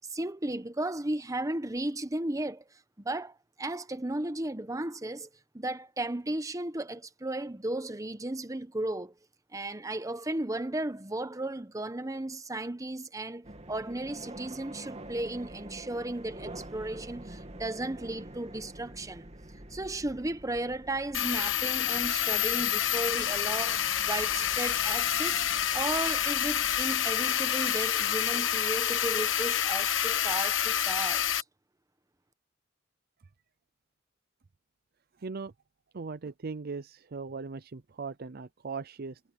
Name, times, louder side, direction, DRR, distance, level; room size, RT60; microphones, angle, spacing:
voice 1, 0.1-2.6 3.0-5.3 5.5-9.1 9.5-19.3 19.7-25.4 25.7-31.4, right 1 dB, 15° right, 1.1 m, -35 dB
sound 1, 13.4-27.0, right 1 dB, 35° right, 2.8 m, -47 dB
sound 2, 21.1-31.4, left 10 dB, 70° left, 1.3 m, -28 dB
voice 2, 35.2-35.5 35.9-39.2, right 4 dB, 50° right, 0.6 m, -39 dB
head